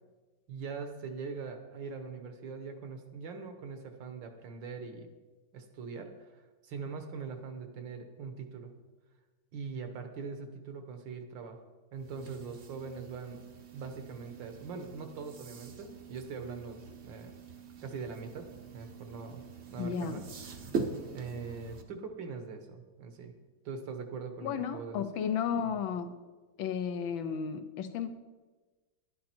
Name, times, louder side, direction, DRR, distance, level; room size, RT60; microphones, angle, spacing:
voice 1, 0.5-5.1 5.5-8.7 9.5-11.6 11.9-13.4 13.7-17.3 17.8-18.5 18.7-19.4 19.7-20.6 21.1-23.3 23.7-25.2, right 5 dB, 70° right, 7 dB, 1.7 m, -42 dB
sound 1, 12.0-21.8, right 4 dB, 45° right, 0.9 m, -43 dB
voice 2, 19.8-20.2 24.4-26.1 26.6-28.1, left 7 dB, 80° left, 10 dB, 1.5 m, -33 dB
11.5 x 10.5 x 4.4 m, 1.3 s
omnidirectional pair, 2.2 m